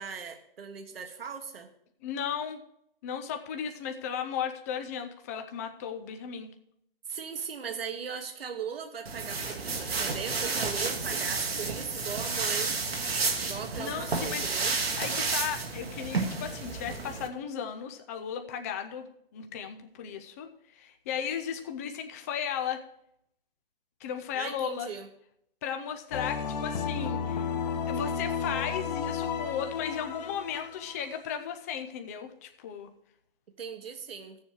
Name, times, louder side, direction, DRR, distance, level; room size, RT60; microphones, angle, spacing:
voice 1, 0.0-1.7 7.1-12.8 13.5-14.8 24.3-25.1 33.6-34.4, right 6 dB, 75° right, 6 dB, 1.4 m, -38 dB
voice 2, 2.0-2.6 3.0-6.5 13.8-14.5 15.0-19.1 19.3-22.8 24.0-24.9 25.6-27.5 27.9-32.9, left 8 dB, 15° left, 6 dB, 0.5 m, -35 dB
sound 1, 9.0-17.3, right 4 dB, 90° right, 1.7 m, -31 dB
sound 2, 26.1-31.5, left 6 dB, 45° left, 1.3 m, -33 dB
15.5 x 7.2 x 4.7 m, 0.74 s
hypercardioid pair, 150°, 30 cm